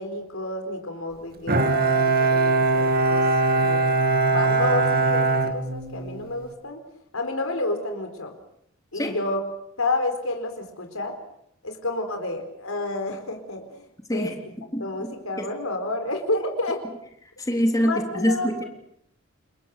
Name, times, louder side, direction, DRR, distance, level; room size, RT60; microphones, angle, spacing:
voice 1, 0.0-3.2 3.5-3.8 4.3-6.8 7.1-8.3 8.9-9.4 9.8-11.2 11.6-13.8 14.1-14.3 14.8-16.8 17.8-18.5, left 2 dB, 85° left, 5 dB, 4.4 m, -29 dB
Bowed string instrument, 1.5-6.3, right 3 dB, 45° right, 2.1 m, -21 dB
voice 2, 14.1-15.5 17.4-18.6, equal, 15° left, 3 dB, 3.4 m, -26 dB
29.5 x 22.0 x 6.7 m, 0.72 s
head